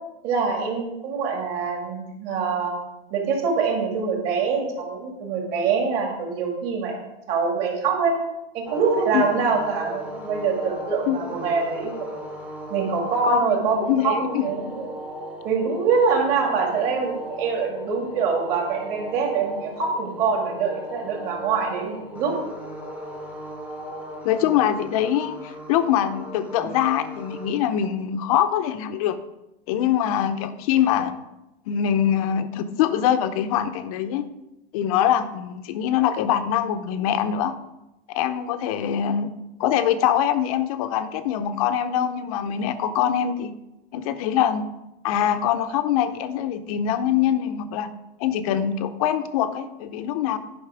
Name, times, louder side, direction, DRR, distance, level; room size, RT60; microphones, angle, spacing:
voice 1, 0.2-2.7 3.1-7.0 7.3-8.1 8.5-12.2 12.7-14.9 15.4-22.3, right 5 dB, 35° right, 1 dB, 2.1 m, -24 dB
sound 1, 8.7-27.5, equal, 5° right, 0.9 m, -37 dB
voice 2, 13.3-14.4 24.2-29.2 29.7-31.1 31.7-34.2 34.7-37.5 38.1-39.3 39.6-43.5 43.9-44.6 45.0-47.9 48.2-50.4, left 10 dB, 40° left, 10 dB, 0.7 m, -23 dB
11.0 x 5.4 x 4.9 m, 0.94 s
supercardioid pair, 155°, 29 cm